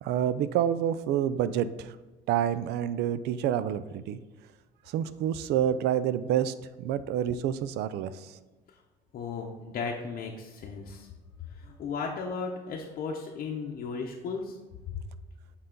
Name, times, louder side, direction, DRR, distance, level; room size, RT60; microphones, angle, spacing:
voice 1, 0.0-1.9 2.3-4.2 4.9-8.4, right 10 dB, 80° right, 14 dB, 0.4 m, -28 dB
voice 2, 9.1-11.1 11.5-14.6, left 5 dB, 60° left, 0 dB, 0.7 m, -35 dB
7.9 x 3.9 x 3.8 m, 1.2 s
cardioid pair, 110°, 17 cm